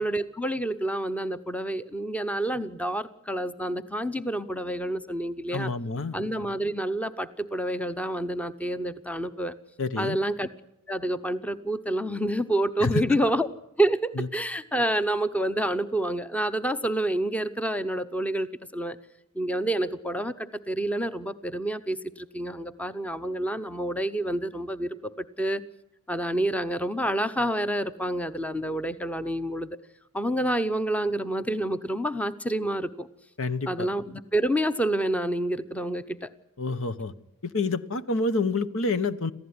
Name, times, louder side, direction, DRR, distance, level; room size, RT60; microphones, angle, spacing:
voice 1, 0.0-5.7 6.1-9.6 10.0-10.5 10.9-13.5 13.8-18.5 18.7-19.0 19.3-25.6 26.1-29.8 30.1-33.1 33.7-36.3, right 1 dB, 5° left, 12 dB, 0.8 m, -28 dB
voice 2, 5.5-6.2 9.8-10.2 12.8-13.2 14.2-14.3 33.4-33.9 36.6-37.1 37.4-39.3, left 3 dB, 65° left, 13 dB, 1.1 m, -28 dB
27.5 x 15.0 x 9.7 m, 0.88 s
head